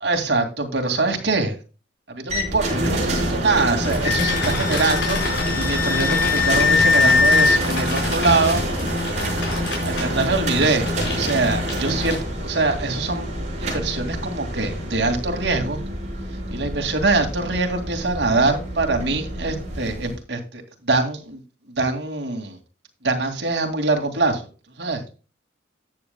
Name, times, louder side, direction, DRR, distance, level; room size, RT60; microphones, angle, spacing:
voice 1, 0.0-1.6 2.1-8.6 9.9-12.2 12.4-13.3 13.6-15.8 16.5-21.4 21.8-22.6 23.0-24.4 24.8-25.1, right 3 dB, 65° right, 4 dB, 2.3 m, -23 dB
sound 1, 2.3-20.2, equal, 40° right, 4.5 m, -27 dB
sound 2, 3.8-12.6, left 2 dB, 75° left, 5.1 m, -31 dB
Wind instrument woodwind instrument, 4.0-7.6, left 5 dB, 50° left, 1.0 m, -20 dB
13.5 x 9.0 x 2.2 m, 0.33 s
head